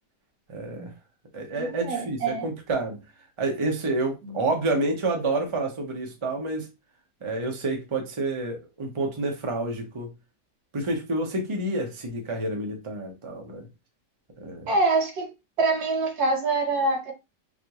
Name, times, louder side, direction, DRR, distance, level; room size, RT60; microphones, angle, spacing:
voice 1, 0.5-0.9 1.3-3.0 3.4-6.7 7.2-10.1 10.7-13.6 14.4-14.7, right 2 dB, 35° right, 0.4 m, -29 dB
voice 2, 1.6-2.5 4.2-4.4 14.7-15.3 15.6-17.1, right 3 dB, 65° right, 1.5 m, -25 dB
4.2 x 2.5 x 2.9 m
omnidirectional pair, 1.8 m